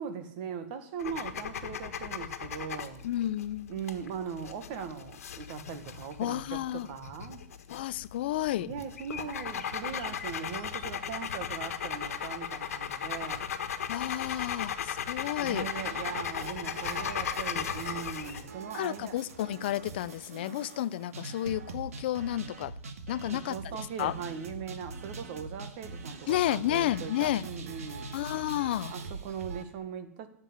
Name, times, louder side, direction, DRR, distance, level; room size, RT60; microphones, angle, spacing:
voice 1, 0.0-3.0 3.7-7.4 8.6-13.4 15.4-19.2 23.3-28.1 28.9-30.3, right 7 dB, 35° right, 1.5 m, -40 dB
sound 1, 1.0-18.5, left 8 dB, 75° left, 1.5 m, -37 dB
voice 2, 3.0-3.8 6.2-6.9 7.7-8.7 13.9-15.7 18.7-22.7 23.1-24.2 26.3-27.5 28.1-28.9, left 13 dB, 45° left, 0.5 m, -31 dB
sound 2, 15.2-29.6, right 3 dB, 75° right, 2.1 m, -43 dB
13.0 x 7.5 x 9.8 m
hypercardioid pair, 165°, 8 cm